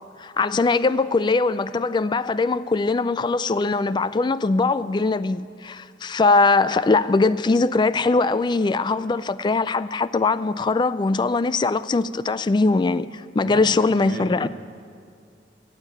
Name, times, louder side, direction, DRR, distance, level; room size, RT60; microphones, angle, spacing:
voice 1, 0.2-14.5, left 3 dB, 25° left, 0.3 m, -21 dB
voice 2, 13.4-14.5, right 2 dB, 55° right, 1.1 m, -35 dB
15.5 x 7.4 x 8.9 m
head